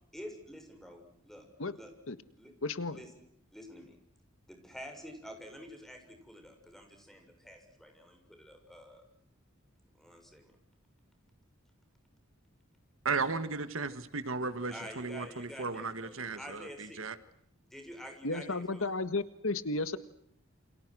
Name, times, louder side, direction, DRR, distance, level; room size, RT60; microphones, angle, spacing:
voice 1, 0.1-1.4 1.7-1.9 2.4-2.5 2.9-3.1 3.5-4.0 4.5-9.0 10.0-10.5 14.7-17.0 17.6-18.9, equal, ahead, 6.8 m, -48 dB
voice 2, 2.6-3.0 18.2-20.0, left 3 dB, 70° left, 1.7 m, -33 dB
voice 3, 13.0-17.2, right 4 dB, 70° right, 1.8 m, -35 dB
29.5 x 28.0 x 6.3 m
head